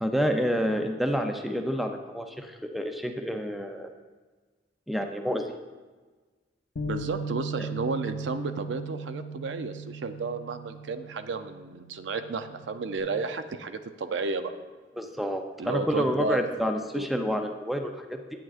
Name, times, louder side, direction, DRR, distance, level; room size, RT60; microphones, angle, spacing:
voice 1, 0.0-3.9 4.9-5.5 15.0-18.2, equal, ahead, 5 dB, 0.4 m, -29 dB
Bass guitar, 6.8-13.0, right 3 dB, 85° left, 0.7 m, -38 dB
voice 2, 6.8-14.5 15.6-16.5 16.9-17.1, right 4 dB, 75° right, 10 dB, 0.5 m, -32 dB
9.0 x 8.6 x 2.4 m, 1.4 s
head